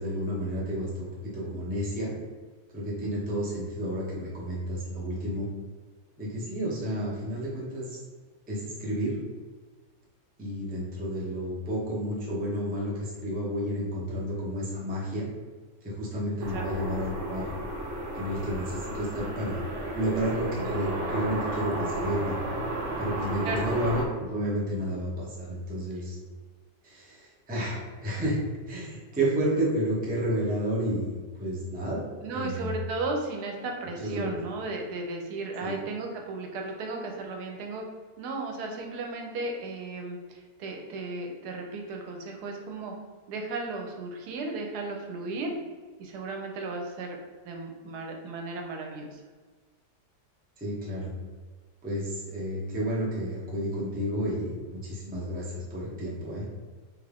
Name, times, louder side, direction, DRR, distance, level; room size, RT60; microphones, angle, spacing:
voice 1, 0.0-2.1 2.7-5.5 6.2-8.0 8.5-9.2 10.4-15.3 15.8-17.5 18.1-19.6 19.9-22.4 23.0-26.2 26.8-28.4 28.7-32.0 32.3-32.7 34.0-34.3 35.6-35.8 50.6-51.1 51.8-56.5, equal, 15° right, -6 dB, 0.3 m, -31 dB
sound 1, 16.4-24.0, right 1 dB, 65° right, 0.8 m, -33 dB
voice 2, 32.2-37.8 38.2-42.9 43.3-45.5 46.0-47.2 47.4-49.2, right 3 dB, 85° right, 2 dB, 1.1 m, -35 dB
3.2 x 2.4 x 3.3 m, 1.4 s
omnidirectional pair, 1.7 m